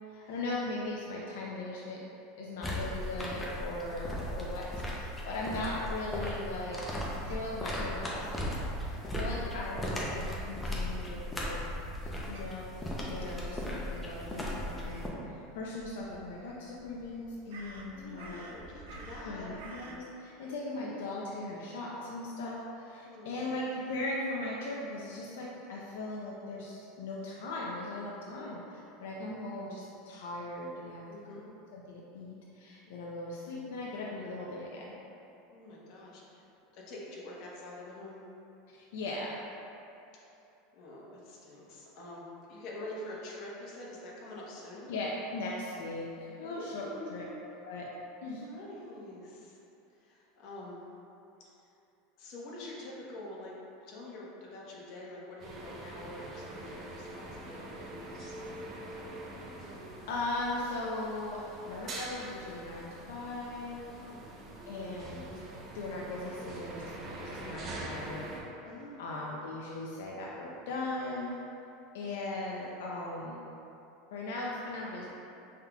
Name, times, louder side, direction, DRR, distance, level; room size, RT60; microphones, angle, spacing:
voice 1, 0.1-2.0 2.4-6.8 7.2-11.6 12.0-18.6 19.2-31.0 31.7-35.0 38.7-39.4 44.9-47.3 47.6-47.9 48.2-48.4 60.1-63.8 64.7-65.2 65.7-66.8 67.2-68.3 69.0-71.4 71.9-73.4 74.1-75.1, left 2 dB, 85° left, -4 dB, 0.5 m, -38 dB
sound 1, 2.6-15.1, equal, 10° left, 0.6 m, -37 dB
Crow, 11.9-20.0, right 2 dB, 85° right, 0.5 m, -53 dB
voice 2, 17.9-19.5 23.0-23.6 28.2-28.5 31.1-31.5 35.5-36.5 36.7-38.2 40.7-44.9 46.4-47.4 48.4-49.6 50.0-50.8 52.2-53.5 53.8-58.4 63.9-64.2 68.6-68.9, left 1 dB, 50° left, -5 dB, 1.0 m, -46 dB
sound 2, 55.4-68.4, right 1 dB, 30° right, 0.6 m, -44 dB
5.5 x 3.6 x 2.3 m, 2.8 s
supercardioid pair, 155°, 0 cm